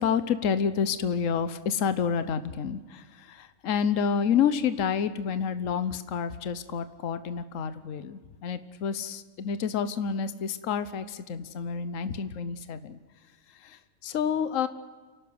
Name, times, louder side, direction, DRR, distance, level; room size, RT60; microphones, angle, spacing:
voice 1, 0.0-13.0 13.6-14.7, left 7 dB, 65° left, 12 dB, 1.3 m, -29 dB
28.5 x 12.0 x 9.5 m, 1.3 s
omnidirectional pair, 1.5 m